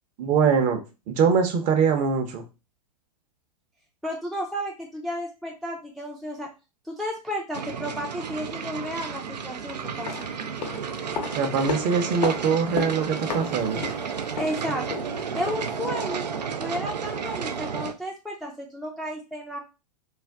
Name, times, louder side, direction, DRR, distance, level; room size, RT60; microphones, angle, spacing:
voice 1, 0.2-0.8 1.1-2.4 11.3-13.9, right 6 dB, 35° right, 6 dB, 0.7 m, -23 dB
voice 2, 4.0-6.5 6.8-10.3 14.4-14.8 15.3-16.3 16.6-19.6, equal, ahead, 0 dB, 0.4 m, -32 dB
sound 1, 7.5-17.9, right 6 dB, 85° right, 0.4 m, -32 dB
sound 2, 9.8-15.8 16.1-16.2, left 6 dB, 70° left, 0.7 m, -35 dB
2.4 x 2.2 x 3.4 m, 0.29 s
hypercardioid pair, 105°, 21 cm